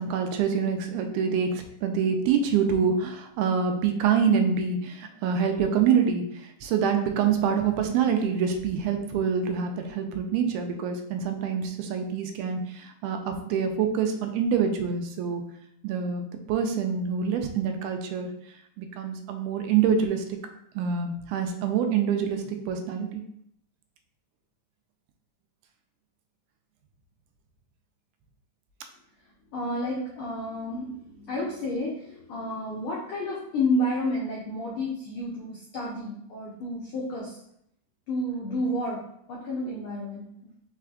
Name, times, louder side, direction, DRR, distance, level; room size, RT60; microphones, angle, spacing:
voice 1, 0.0-15.4 15.8-18.3 18.8-20.2 20.8-23.2, right 7 dB, 90° right, 5 dB, 2.1 m, -26 dB
voice 2, 29.5-37.4 38.1-39.0 39.3-40.6, left 1 dB, 85° left, -4 dB, 1.2 m, -30 dB
4.7 x 4.1 x 2.3 m, 0.72 s
omnidirectional pair, 3.5 m